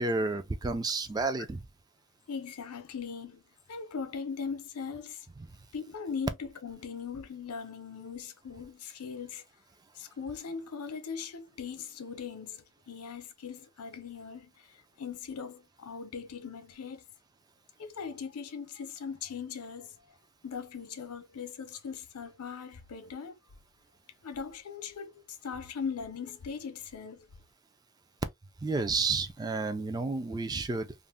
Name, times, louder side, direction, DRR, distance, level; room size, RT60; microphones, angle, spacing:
voice 1, 0.0-1.6 28.6-30.9, right 3 dB, 20° right, 0.3 m, -31 dB
voice 2, 2.3-3.4 3.7-5.3 5.7-9.4 9.9-17.0 17.8-20.1 20.4-23.4 24.2-27.3, left 6 dB, 80° left, 0.6 m, -40 dB
2.5 x 2.0 x 3.4 m
head